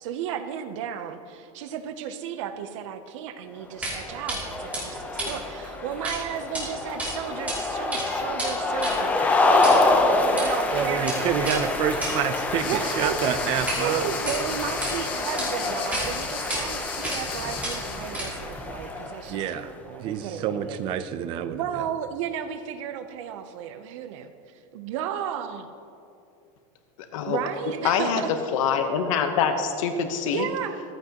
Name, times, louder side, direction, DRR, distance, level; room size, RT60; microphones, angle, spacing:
voice 1, 0.0-10.0 10.3-11.6 12.6-13.2 13.8-20.8 21.5-25.7 27.3-28.3 30.3-30.8, right 9 dB, 60° right, 9 dB, 0.7 m, -34 dB
sound 1, 3.8-19.5, left 2 dB, 10° left, 0.7 m, -27 dB
sound 2, 3.8-4.0 4.3-4.4 4.7-6.2 6.4-6.6 7.0-7.6 7.8-13.8 14.1-14.9 15.4-15.5 15.9-16.1 16.5-16.6 17.0-17.3 17.6-18.5, right 1 dB, 10° right, 2.7 m, -33 dB
voice 2, 10.7-14.0 19.3-21.6, right 9 dB, 30° right, 11 dB, 0.5 m, -28 dB
sound 3, 12.6-18.2, left 6 dB, 30° left, 1.3 m, -36 dB
voice 3, 27.8-28.2 28.5-30.5, left 7 dB, 70° left, 6 dB, 1.0 m, -24 dB
14.5 x 14.5 x 2.9 m, 2.7 s
supercardioid pair, 180°, 18 cm